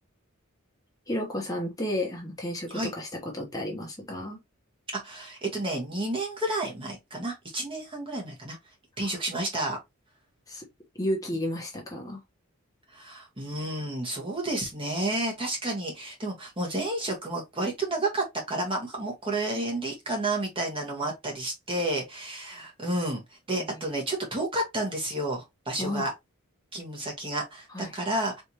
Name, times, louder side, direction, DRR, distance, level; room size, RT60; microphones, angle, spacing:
voice 1, 1.1-4.4 9.0-9.1 10.5-10.7 11.0-12.2 25.8-26.1 27.7-27.9, left 1 dB, 15° left, 1.1 m, -32 dB
voice 2, 5.0-8.6 9.0-9.8 12.9-23.2 23.5-26.1 26.7-28.4, right 1 dB, 25° right, 1.4 m, -31 dB
4.3 x 3.5 x 2.9 m
head